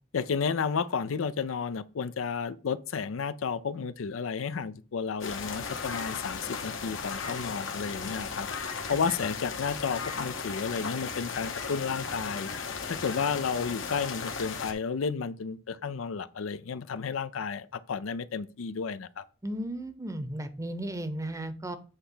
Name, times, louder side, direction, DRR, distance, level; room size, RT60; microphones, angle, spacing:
voice 1, 0.1-12.5 12.9-19.2, left 5 dB, 85° left, 0.5 m, -32 dB
sound 1, 5.2-14.7, left 5 dB, 70° left, 1.1 m, -36 dB
voice 2, 19.4-21.8, right 1 dB, 15° right, 0.7 m, -35 dB
8.1 x 3.4 x 5.6 m
head